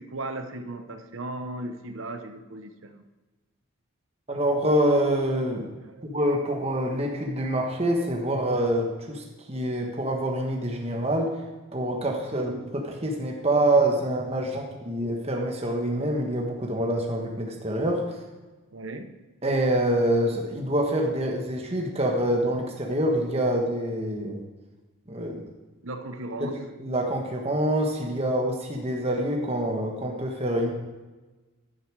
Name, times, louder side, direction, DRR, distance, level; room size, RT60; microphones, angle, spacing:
voice 1, 0.0-3.0 5.9-6.1 18.7-19.1 25.8-26.6, right 2 dB, 65° right, 8 dB, 1.0 m, -36 dB
voice 2, 4.3-5.7 6.0-11.3 11.7-18.2 19.4-24.4 25.1-25.4 26.4-26.5 26.8-30.7, right 1 dB, 30° right, 1 dB, 1.3 m, -26 dB
11.0 x 9.9 x 4.7 m, 1.2 s
head